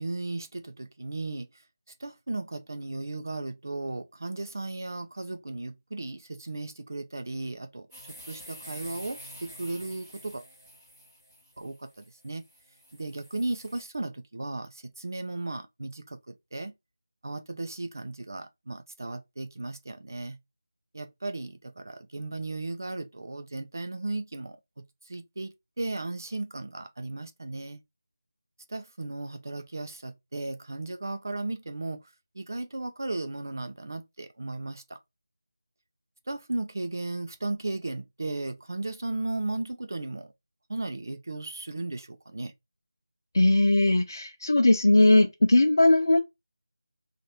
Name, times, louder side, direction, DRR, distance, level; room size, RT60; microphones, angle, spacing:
voice 1, 0.0-1.5 2.0-10.4 11.6-12.4 12.9-16.7 17.2-20.4 20.9-27.8 28.7-35.0 36.3-40.3 40.7-42.5, right 2 dB, 50° right, 0.5 m, -35 dB
sound 1, 7.9-13.8, equal, ahead, 0.8 m, -48 dB
voice 2, 43.3-46.2, left 2 dB, 60° left, 0.6 m, -19 dB
2.8 x 2.5 x 3.2 m
figure-of-eight pair, 175°, 2 cm